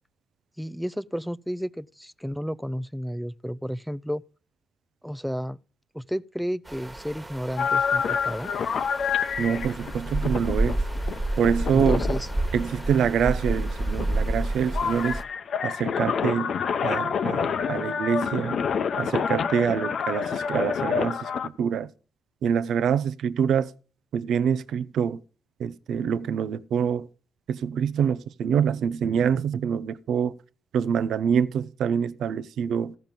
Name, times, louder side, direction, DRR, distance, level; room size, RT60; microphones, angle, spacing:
voice 1, 0.6-4.2 5.0-5.6 5.9-8.5 11.7-12.3, equal, ahead, 0.4 m, -32 dB
sound 1, 6.7-15.2, right 1 dB, 20° right, 1.5 m, -30 dB
sound 2, 7.6-21.5, left 6 dB, 65° left, 0.7 m, -28 dB
voice 2, 9.4-10.8 11.4-12.0 12.5-15.2 15.6-16.5 16.8-18.6 19.0-21.9 22.4-23.7 24.1-25.2 25.6-27.1 27.5-30.4 30.7-33.0, right 7 dB, 70° right, 0.5 m, -25 dB
14.5 x 5.3 x 7.4 m
supercardioid pair, 55°, 0 cm